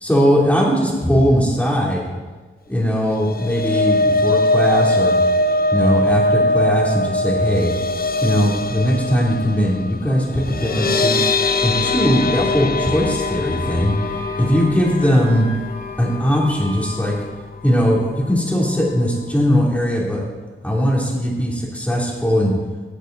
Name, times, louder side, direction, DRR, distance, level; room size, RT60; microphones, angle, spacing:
voice 1, 0.0-2.1 2.7-5.2 5.7-7.7 8.2-11.2 11.6-13.9 14.4-15.5 16.0-17.1 17.6-20.2 20.6-22.5, equal, 5° left, -3 dB, 2.9 m, -19 dB
sound 1, 3.1-17.3 17.6-17.9 18.2-18.3, left 2 dB, 45° left, 0.6 m, -21 dB
Wind instrument woodwind instrument, 13.6-17.3, equal, 25° left, 3.3 m, -38 dB
16.5 x 8.4 x 3.9 m, 1.3 s
wide cardioid pair, 115°, 21 cm